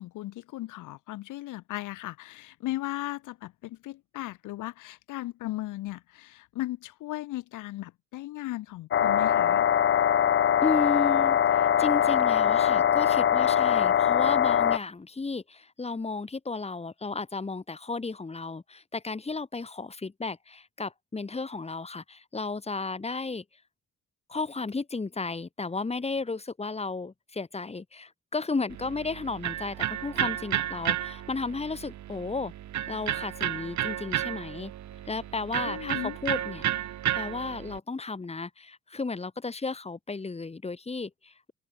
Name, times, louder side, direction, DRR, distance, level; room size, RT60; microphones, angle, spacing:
voice 1, 0.0-9.7 35.7-36.2, left 16 dB, 90° left, 1.8 m, -36 dB
sound 1, 8.9-14.8, left 9 dB, 40° left, 0.7 m, -22 dB
voice 2, 10.6-23.4 24.3-32.5 32.9-34.7 35.1-36.9 37.1-41.5, left 3 dB, 20° left, 1.7 m, -33 dB
Electric guitar, 28.7-37.8, right 12 dB, 70° right, 2.0 m, -32 dB
cardioid pair, 90°, 30 cm